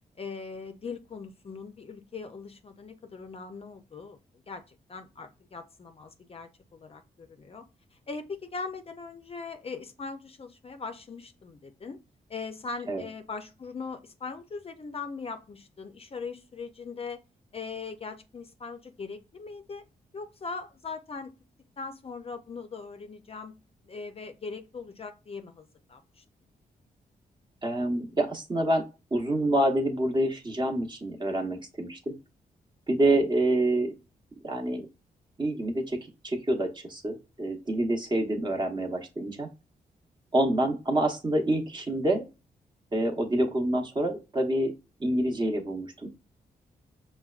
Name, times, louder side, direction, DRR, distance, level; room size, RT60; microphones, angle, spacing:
voice 1, 0.2-4.2 4.5-7.7 8.1-12.0 12.3-17.2 17.5-19.8 20.1-21.3 21.8-23.6 23.9-26.2, left 4 dB, 35° left, 7 dB, 0.5 m, -40 dB
voice 2, 27.6-28.8 29.1-32.1 32.9-33.9 34.4-34.9 35.4-39.5 40.3-42.3 42.9-44.7 45.0-46.1, right 1 dB, 30° right, 3 dB, 0.9 m, -27 dB
5.5 x 2.2 x 2.4 m, 0.29 s
cardioid pair, 70°, 16 cm